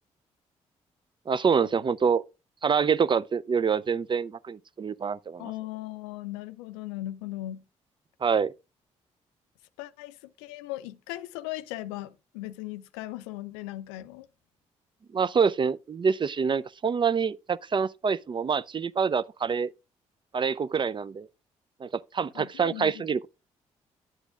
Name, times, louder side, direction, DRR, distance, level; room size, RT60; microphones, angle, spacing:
voice 1, 1.3-2.2 2.6-5.5 8.2-8.5 15.1-19.7 20.3-21.3 21.8-23.3, right 6 dB, 35° right, 0.4 m, -26 dB
voice 2, 5.4-7.6 9.8-14.3 22.3-23.0, left 16 dB, 90° left, 0.4 m, -38 dB
10.5 x 8.0 x 2.4 m
hypercardioid pair, 45°, 15 cm